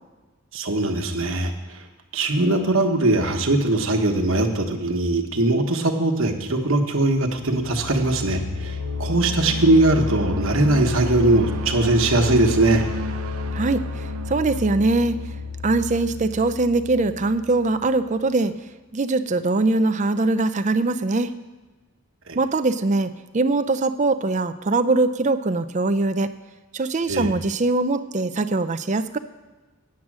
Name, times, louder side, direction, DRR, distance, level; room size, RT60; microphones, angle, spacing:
voice 1, 0.5-1.8 2.1-12.8 22.3-22.4 27.1-27.3, right 2 dB, 65° right, 3 dB, 1.3 m, -20 dB
sound 1, 7.2-17.9, left 3 dB, 85° right, 0.9 m, -30 dB
voice 2, 13.5-15.2 15.6-18.5 18.9-21.3 22.3-26.3 26.7-29.2, right 2 dB, 35° right, 11 dB, 0.5 m, -22 dB
9.6 x 7.5 x 7.4 m, 1.3 s
head